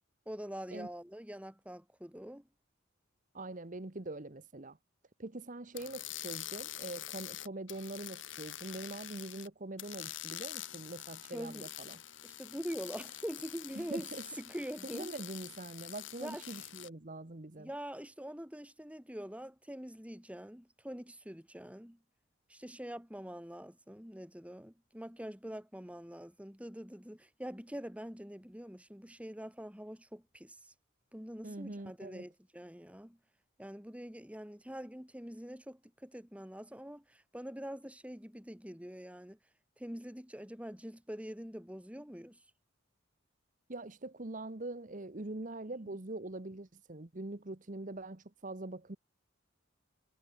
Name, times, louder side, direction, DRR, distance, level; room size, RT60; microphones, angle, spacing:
voice 1, 0.2-2.5 11.3-11.7 12.2-14.1 14.4-15.1 16.2-16.7 17.6-22.0 22.5-30.7 31.1-33.2 33.6-39.4 39.8-42.4 45.9-46.0, equal, 5° right, 3.3 m, -44 dB
voice 2, 3.3-4.8 5.2-12.0 13.7-14.2 14.9-17.7 31.4-32.3 43.7-49.0, right 2 dB, 40° right, 1.2 m, -43 dB
sound 1, 5.7-9.5 9.8-16.9, left 13 dB, 70° left, 2.6 m, -46 dB
head